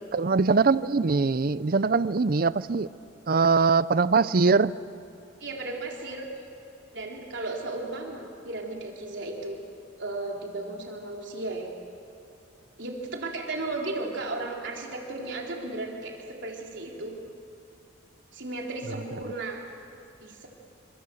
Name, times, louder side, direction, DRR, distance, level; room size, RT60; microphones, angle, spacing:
voice 1, 0.1-2.9 3.3-4.8, right 4 dB, 50° right, 17 dB, 0.5 m, -22 dB
voice 2, 5.4-6.3 6.9-9.6 10.0-11.7 12.8-17.1 18.3-19.6 20.2-20.5, right 2 dB, 65° right, 0 dB, 3.8 m, -35 dB
27.0 x 26.5 x 7.8 m, 2.5 s
head